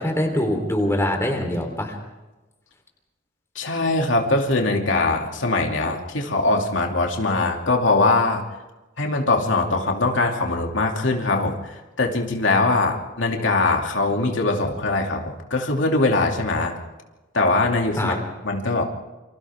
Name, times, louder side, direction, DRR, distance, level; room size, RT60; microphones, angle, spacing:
voice 1, 0.0-2.0 18.0-18.2, left 1 dB, 15° left, 3 dB, 3.6 m, -23 dB
voice 2, 3.5-8.6 9.0-16.8 17.3-18.1 18.4-18.8, left 2 dB, 80° left, 1 dB, 2.6 m, -22 dB
29.0 x 26.0 x 3.6 m, 1.1 s
head